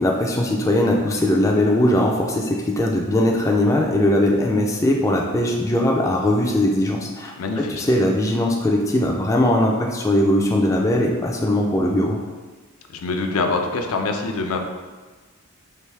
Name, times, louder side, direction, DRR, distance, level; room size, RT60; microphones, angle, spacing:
voice 1, 0.0-12.2, left 1 dB, 15° left, 0 dB, 0.3 m, -20 dB
voice 2, 7.4-7.8 12.9-14.6, left 3 dB, 75° left, 4 dB, 0.5 m, -24 dB
4.5 x 2.6 x 3.3 m, 1.3 s
head